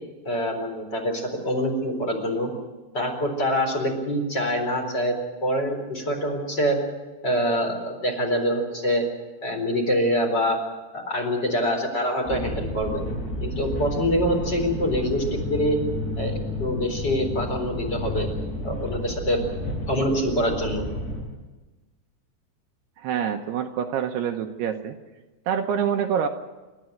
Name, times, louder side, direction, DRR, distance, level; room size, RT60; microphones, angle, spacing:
voice 1, 0.2-2.5 2.9-6.8 7.2-9.0 9.4-10.6 10.9-13.0 13.4-15.8 16.2-18.3 18.6-19.4 19.9-20.8, equal, 25° left, 3 dB, 4.3 m, -25 dB
sound 1, 12.3-21.2, left 1 dB, 65° left, 9.5 m, -31 dB
voice 2, 23.0-25.0 25.5-26.3, right 8 dB, 75° right, 4 dB, 2.8 m, -26 dB
28.5 x 13.5 x 9.1 m, 1.2 s
omnidirectional pair, 5.2 m